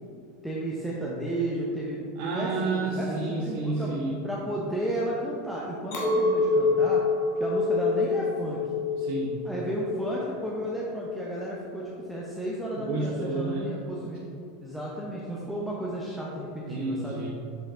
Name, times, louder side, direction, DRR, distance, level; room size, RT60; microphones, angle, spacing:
voice 1, 0.4-3.1 3.4-3.9 4.2-7.0 7.3-8.6 9.4-14.2 14.6-17.2, right 1 dB, ahead, -5 dB, 0.8 m, -33 dB
voice 2, 2.2-4.2 9.0-9.4 12.8-13.7 16.7-17.3, right 3 dB, 65° right, -2 dB, 0.8 m, -30 dB
Chink clink, 5.9-11.3, left 3 dB, 65° left, 1.6 m, -27 dB
6.6 x 5.1 x 3.8 m, 2.5 s
supercardioid pair, 120°, 0 cm